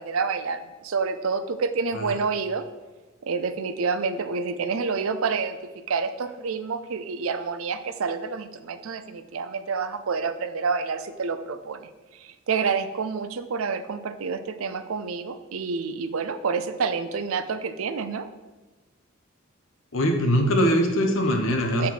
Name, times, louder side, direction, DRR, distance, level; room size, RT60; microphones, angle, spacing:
voice 1, 0.0-2.7 3.2-18.3 21.8-21.9, right 5 dB, 80° right, 11 dB, 0.5 m, -28 dB
voice 2, 19.9-21.9, equal, 70° left, 3 dB, 1.1 m, -22 dB
7.6 x 4.3 x 5.8 m, 1.2 s
head